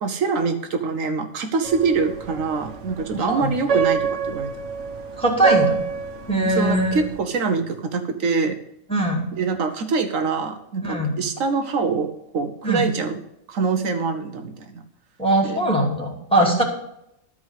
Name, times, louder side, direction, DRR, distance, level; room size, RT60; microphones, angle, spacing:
voice 1, 0.0-4.5 6.4-8.6 9.3-13.2 13.5-14.8 15.4-15.7 16.4-16.6, right 4 dB, 80° right, 7 dB, 1.2 m, -24 dB
sound 1, 1.6-7.2, right 6 dB, 65° right, 1.5 m, -27 dB
voice 2, 3.1-3.5 5.2-5.8 6.3-7.0 8.9-9.3 10.8-11.2 12.6-12.9 15.2-16.6, right 1 dB, 5° left, -1 dB, 2.6 m, -21 dB
12.5 x 4.9 x 8.1 m, 0.80 s
omnidirectional pair, 1.4 m